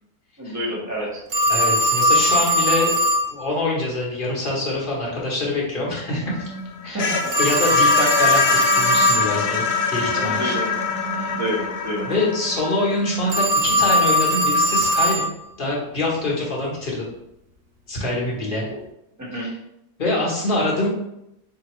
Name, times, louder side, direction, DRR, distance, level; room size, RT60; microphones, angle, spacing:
voice 1, 0.4-1.2 6.8-7.3 10.1-10.7 11.3-12.1 19.2-19.5, equal, 15° right, -5 dB, 1.0 m, -28 dB
Telephone, 1.3-3.3 7.3-9.3 13.3-15.3, equal, 75° right, 0.4 m, -19 dB
voice 2, 1.5-3.0 3.3-6.4 6.8-7.1 7.4-10.6 11.1-11.3 12.0-15.3 15.6-17.0 17.9-18.7 19.3-19.5 20.0-20.9, left 2 dB, 35° left, -4 dB, 1.1 m, -25 dB
sound 1, 6.3-15.1, left 5 dB, 85° left, 1.2 m, -26 dB
4.1 x 2.9 x 3.0 m, 0.83 s
omnidirectional pair, 1.7 m